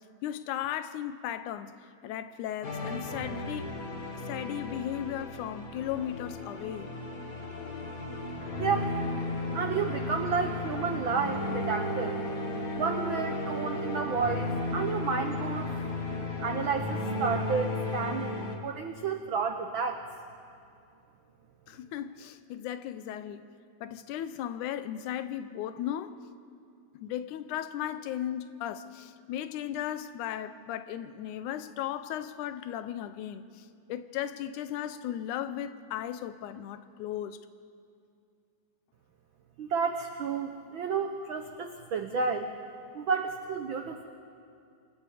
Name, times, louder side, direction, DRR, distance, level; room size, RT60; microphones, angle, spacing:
voice 1, 0.2-1.7 2.0-3.7 4.1-6.9 21.7-23.5 23.8-26.2 26.9-37.4, left 11 dB, 80° left, 2.1 m, -36 dB
sound 1, 2.6-18.6, left 2 dB, 35° left, 1.5 m, -34 dB
voice 2, 8.6-9.0 9.5-12.2 12.7-15.7 16.4-20.0 39.6-42.5 42.9-44.0, right 5 dB, 80° right, 1.1 m, -31 dB
26.5 x 21.5 x 5.0 m
omnidirectional pair, 3.6 m